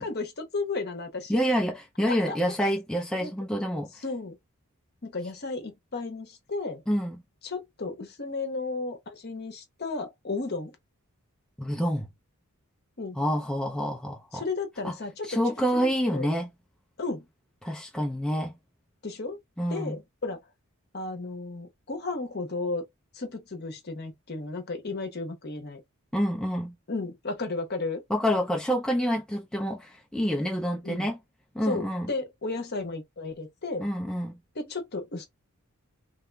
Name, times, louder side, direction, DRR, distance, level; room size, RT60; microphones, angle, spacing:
voice 1, 0.0-1.4 2.1-2.4 3.2-3.3 4.0-4.4 5.0-6.8 7.4-10.8 13.0-13.2 14.3-15.3 15.8-16.3 17.0-17.2 19.0-19.4 19.7-20.4 20.9-22.8 23.1-25.8 26.9-28.0 30.8-31.1 31.7-33.9 34.6-35.3, left 3 dB, 45° left, 0.9 m, -34 dB
voice 2, 1.3-4.0 6.9-7.2 11.6-12.1 13.1-14.4 14.8-15.0 15.2-16.5 17.6-18.5 19.6-20.0 26.1-26.7 28.1-31.2 31.5-32.1 33.8-34.4, equal, 5° left, 0.4 m, -27 dB
3.1 x 2.8 x 2.2 m
head